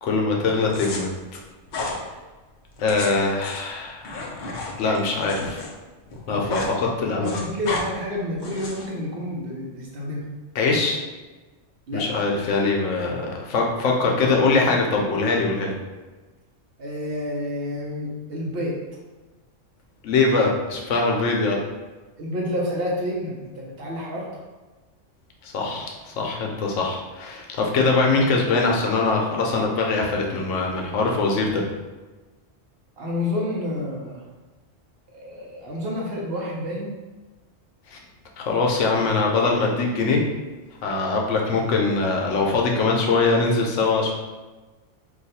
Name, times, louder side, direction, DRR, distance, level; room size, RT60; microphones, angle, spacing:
voice 1, 0.0-1.4 2.8-4.4 4.8-5.6 6.3-7.3 10.5-11.0 11.9-15.7 20.0-21.6 25.4-31.6 37.9-38.0 38.4-40.2 40.8-44.1, left 3 dB, 80° left, 0 dB, 0.9 m, -22 dB
sound 1, 0.7-1.0 1.7-2.0 2.7-5.7 6.0-6.7 7.0-7.8 8.4-8.9, left 3 dB, 55° left, 0.6 m, -32 dB
voice 2, 7.2-10.2 11.9-12.1 16.8-18.7 22.2-24.3 33.0-34.2 35.1-36.9, left 1 dB, 60° right, -3 dB, 0.8 m, -29 dB
2.6 x 2.3 x 4.1 m, 1.2 s
omnidirectional pair, 1.3 m